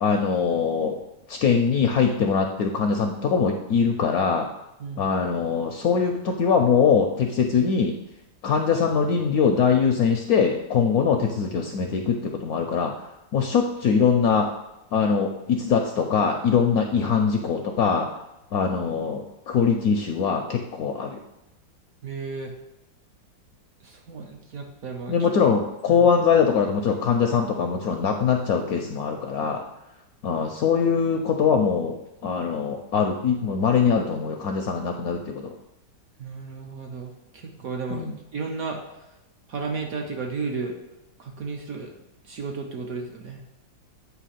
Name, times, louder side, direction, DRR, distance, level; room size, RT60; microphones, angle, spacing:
voice 1, 0.0-1.0 1.3-4.5 5.0-8.0 8.4-12.9 13.3-14.5 14.9-18.1 18.5-21.2 25.1-29.6 30.2-32.0 32.2-35.5 37.9-38.1, left 6 dB, 70° left, 3 dB, 0.9 m, -22 dB
voice 2, 4.8-5.1 22.0-22.5 23.8-25.3 25.9-26.1 36.2-38.1 38.3-39.1 39.5-40.8 41.2-41.9 42.2-43.4, right 4 dB, 60° right, 1 dB, 1.1 m, -33 dB
8.3 x 2.9 x 5.7 m, 0.93 s
omnidirectional pair, 2.0 m